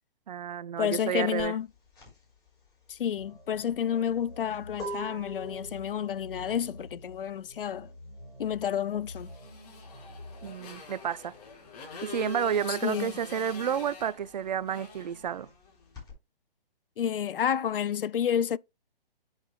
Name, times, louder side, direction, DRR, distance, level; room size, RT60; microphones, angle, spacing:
voice 1, 0.3-1.5 10.4-11.3 12.0-15.5, right 8 dB, 45° right, 0.6 m, -31 dB
voice 2, 0.8-1.7 2.9-7.9 8.4-9.3 12.7-13.1 17.0-18.6, left 9 dB, 65° left, 0.5 m, -30 dB
sound 1, 1.4-11.6 11.9-16.1, right 1 dB, 15° left, 4.5 m, -45 dB
sound 2, 3.2-10.5, left 1 dB, 85° right, 2.3 m, -48 dB
Motorcycle, 9.1-15.8, left 6 dB, 40° left, 5.1 m, -45 dB
8.9 x 7.9 x 2.2 m
figure-of-eight pair, 135°, 30 cm